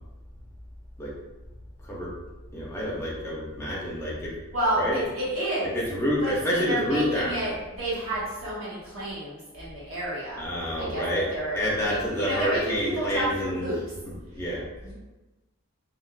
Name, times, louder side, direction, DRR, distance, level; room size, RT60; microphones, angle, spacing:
voice 1, 2.5-4.3 4.8-5.0 5.7-7.5 10.4-11.3 11.5-13.8 14.0-14.6, equal, 10° left, -6 dB, 0.7 m, -28 dB
voice 2, 4.5-5.8 6.2-10.4 10.8-13.8 14.3-14.4 14.8-14.9, right 1 dB, 70° right, -9 dB, 1.2 m, -30 dB
3.6 x 2.3 x 2.4 m, 1.1 s
head